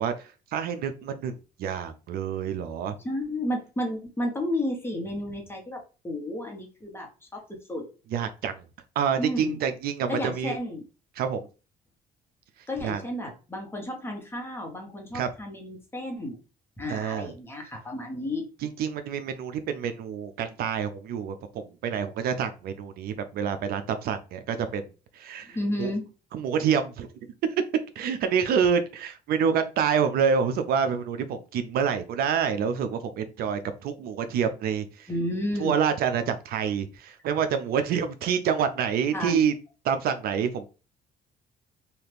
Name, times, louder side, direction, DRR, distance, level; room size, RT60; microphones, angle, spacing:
voice 1, 0.0-1.3 1.6-2.9 8.1-8.6 9.0-10.6 11.2-11.5 12.8-13.0 15.1-15.3 16.9-17.3 18.6-24.8 25.1-25.9 26.3-27.1 28.0-35.1 35.6-39.5 39.9-40.7, right 7 dB, 65° right, 9 dB, 0.4 m, -27 dB
voice 2, 3.0-7.4 7.7-7.9 9.2-9.6 10.1-10.8 12.7-16.4 16.8-18.5 25.5-26.1 35.1-35.7 39.1-39.5, left 1 dB, 15° left, 1 dB, 1.0 m, -32 dB
2.8 x 2.4 x 3.3 m, 0.33 s
cardioid pair, 110°, 17 cm